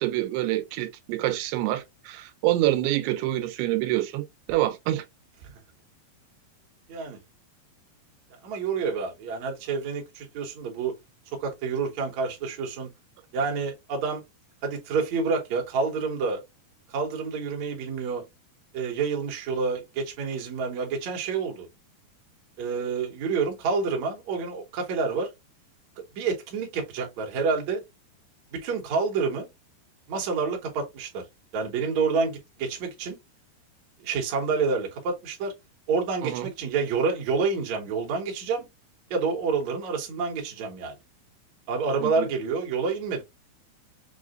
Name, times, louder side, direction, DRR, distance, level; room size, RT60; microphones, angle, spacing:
voice 1, 0.0-5.1 36.2-36.5 42.0-42.3, right 15 dB, 90° right, 2.7 m, -26 dB
voice 2, 8.4-10.9 11.4-12.9 13.3-14.2 14.6-16.4 16.9-18.3 18.7-21.7 22.6-25.3 26.2-27.8 28.5-29.5 30.1-31.2 31.5-33.2 34.0-35.5 35.9-38.7 39.1-41.0 41.7-43.2, right 5 dB, 60° right, 2.1 m, -28 dB
6.6 x 2.4 x 2.4 m
omnidirectional pair, 4.6 m